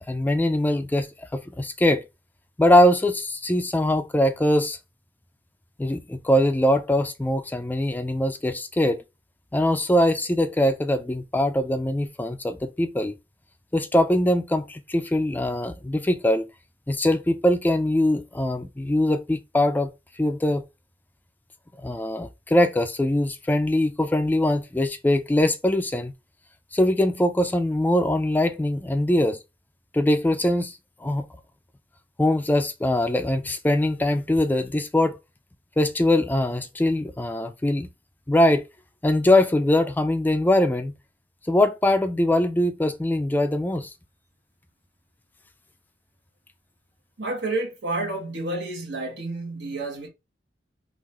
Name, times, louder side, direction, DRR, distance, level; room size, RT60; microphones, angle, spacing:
voice 1, 0.1-2.0 2.6-4.8 5.8-9.0 9.5-13.1 13.7-16.5 16.9-19.9 20.2-20.6 21.8-26.1 26.7-29.4 29.9-31.3 32.2-35.2 35.8-37.9 38.3-38.6 39.0-40.9 41.5-43.9, left 1 dB, 10° left, 0.3 m, -22 dB
voice 2, 47.2-50.1, right 2 dB, 90° right, 1.3 m, -30 dB
3.7 x 2.5 x 3.0 m
head